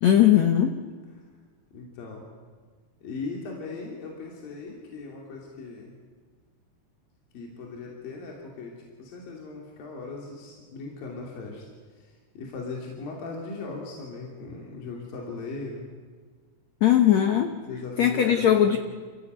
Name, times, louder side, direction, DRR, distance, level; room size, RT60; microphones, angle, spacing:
voice 1, 0.0-0.8 16.8-17.5 18.0-18.8, left 10 dB, 75° left, 6 dB, 1.6 m, -19 dB
voice 2, 1.7-2.3 3.0-5.9 7.3-11.7 12.0-15.8 17.6-18.8, left 3 dB, 55° left, -1 dB, 4.6 m, -38 dB
29.0 x 16.0 x 9.4 m, 1.5 s
omnidirectional pair, 4.9 m